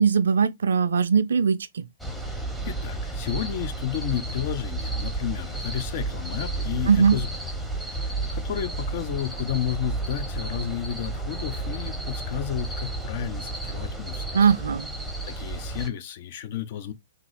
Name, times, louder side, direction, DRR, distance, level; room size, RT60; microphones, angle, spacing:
voice 1, 0.0-1.8 6.9-7.2 14.3-14.9, right 6 dB, 70° right, 0.4 m, -20 dB
sound 1, 2.0-15.9, right 2 dB, ahead, 0.8 m, -32 dB
voice 2, 2.3-7.3 7.9-14.3 15.2-16.9, left 10 dB, 50° left, 0.7 m, -32 dB
3.7 x 2.8 x 3.3 m
figure-of-eight pair, 115°, 0 cm